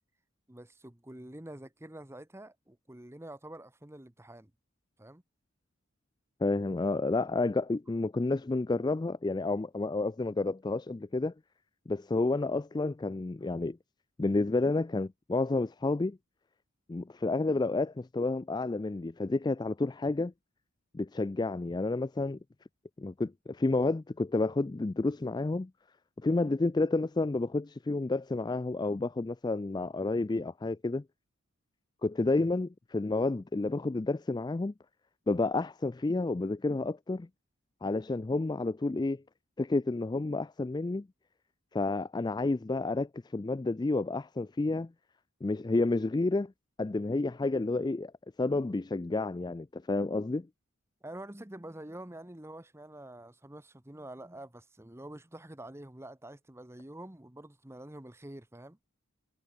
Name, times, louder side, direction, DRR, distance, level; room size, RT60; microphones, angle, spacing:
voice 1, 0.5-4.5 5.0-5.2 51.0-58.8, right 1 dB, 10° right, 1.0 m, -47 dB
voice 2, 6.4-11.3 11.9-13.8 14.2-16.2 16.9-20.3 20.9-22.4 23.0-25.7 26.2-31.0 32.0-34.7 35.3-37.3 37.8-39.2 39.6-41.1 41.7-44.9 45.4-46.5 46.8-48.1 48.4-50.5, left 2 dB, 20° left, 0.3 m, -30 dB
head